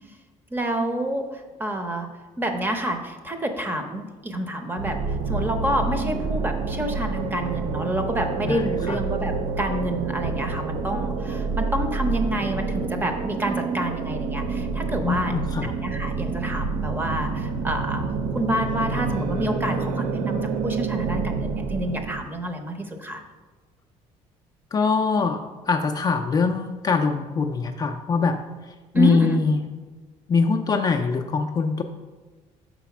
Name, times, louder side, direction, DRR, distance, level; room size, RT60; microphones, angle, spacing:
voice 1, 0.5-2.1 2.4-15.3 15.6-18.0 18.3-23.2 28.9-29.4, right 1 dB, 15° right, 5 dB, 0.7 m, -28 dB
sound 1, 4.8-22.2, right 4 dB, 70° right, 0.4 m, -28 dB
voice 2, 8.4-9.0 15.0-15.7 24.7-25.4 25.7-29.6 30.3-31.8, left 4 dB, 30° left, 4 dB, 0.4 m, -23 dB
5.1 x 4.1 x 5.8 m, 1.3 s
cardioid pair, 130°, 13 cm